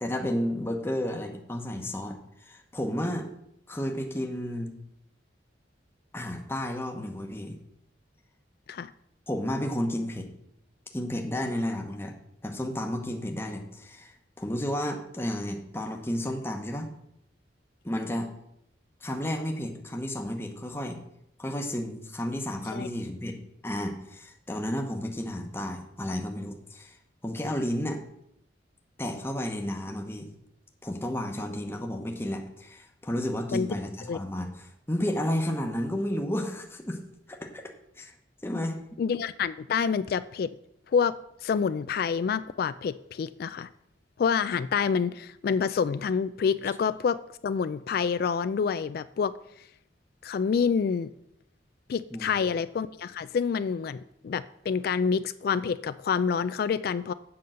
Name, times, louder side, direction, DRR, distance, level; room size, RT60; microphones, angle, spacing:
voice 1, 0.0-3.3 3.7-4.8 6.1-7.6 9.3-10.3 10.9-12.1 12.4-16.9 17.8-18.3 19.0-21.0 21.4-23.3 23.6-27.0 27.2-28.0 29.0-30.3 30.8-37.0 37.3-37.6 38.0-38.1 38.4-38.8 52.1-52.5, left 1 dB, 15° left, 2 dB, 0.9 m, -32 dB
voice 2, 39.0-40.5 40.9-41.1 41.4-43.7 44.2-47.2 47.4-49.3 50.2-51.1 51.9-57.1, left 6 dB, 55° left, 14 dB, 0.3 m, -27 dB
7.8 x 5.4 x 7.5 m, 0.77 s
head